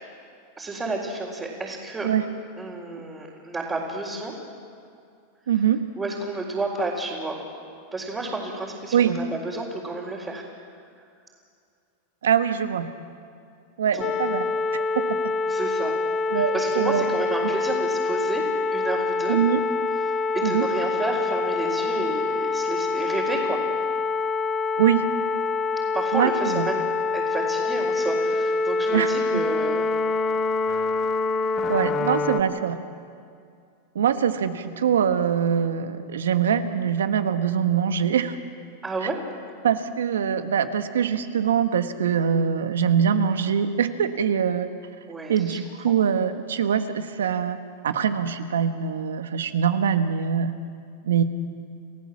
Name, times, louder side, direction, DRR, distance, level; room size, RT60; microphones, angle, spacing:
voice 1, 0.6-2.1 2.6-4.4 6.0-7.4 7.9-10.5 11.0-11.1 13.9-14.1 15.5-16.0 16.3-18.5 18.7-19.4 19.9-23.6 25.7-26.8 27.1-29.9 38.8-39.2 45.1-45.6, right 2 dB, 20° right, -5 dB, 4.1 m, -31 dB
voice 2, 5.5-5.8 8.9-9.2 12.2-12.9 13.8-15.2 16.3-17.0 17.4-17.5 19.3-19.6 20.4-20.7 24.8-25.1 26.1-26.6 28.9-29.1 31.7-32.8 33.9-38.4 39.6-44.7 45.3-47.6 47.8-50.5 51.0-51.2, right 8 dB, 85° right, 9 dB, 1.3 m, -23 dB
sound 1, 14.0-32.4, left 3 dB, 30° left, 1.0 m, -25 dB
30.0 x 14.5 x 7.4 m, 2.3 s
hypercardioid pair, 110°, 0 cm